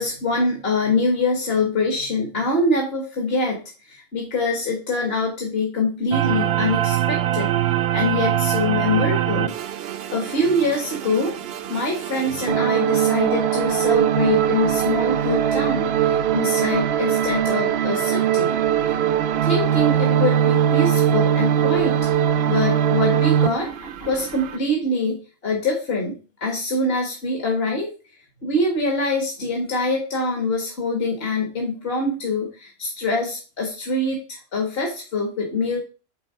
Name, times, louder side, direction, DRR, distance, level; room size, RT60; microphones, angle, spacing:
voice 1, 0.0-3.6 3.9-7.5 7.9-9.5 10.1-11.4 11.7-18.6 18.9-19.0 19.4-22.1 22.5-26.2 26.4-27.9 28.4-35.8, left 2 dB, 65° left, 1 dB, 1.8 m, -24 dB
sound 1, 6.1-24.6, right 10 dB, 70° right, 0.8 m, -21 dB
9.2 x 3.6 x 5.5 m, 0.35 s
omnidirectional pair, 1.1 m